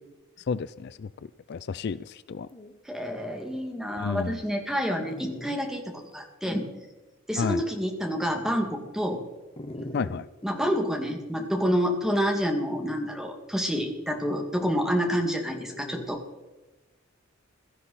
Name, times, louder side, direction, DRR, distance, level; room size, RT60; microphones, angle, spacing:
voice 1, 0.5-1.1 1.5-2.5 4.0-4.4 7.4-7.6 9.9-10.3, left 5 dB, 55° left, 16 dB, 0.4 m, -30 dB
Dog, 2.1-2.2 2.4-2.7 3.4-3.5 4.2-4.3 5.0-5.6 6.1-6.2 9.6-10.6 12.1-12.6 15.5-16.1, left 1 dB, 30° left, 1.1 m, -41 dB
voice 2, 2.8-6.7 7.3-9.2 10.4-16.2, equal, ahead, 2 dB, 2.2 m, -28 dB
16.5 x 13.0 x 4.2 m, 1.1 s
head